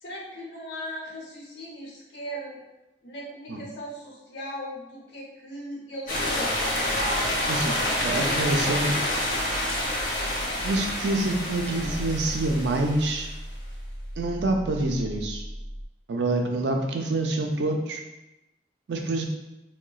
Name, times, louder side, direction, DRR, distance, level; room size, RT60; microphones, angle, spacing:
voice 1, 0.0-2.6 3.0-6.8, equal, 75° left, -4 dB, 0.9 m, -38 dB
sound 1, 6.1-13.3, left 1 dB, 50° left, 1.0 m, -28 dB
voice 2, 7.5-8.9 10.6-13.3 14.2-15.4 16.1-18.0 18.9-19.2, right 2 dB, 75° right, 2 dB, 0.4 m, -26 dB
sound 2, 11.7-15.9, equal, 10° left, 0.6 m, -36 dB
3.8 x 2.1 x 2.3 m, 0.95 s
head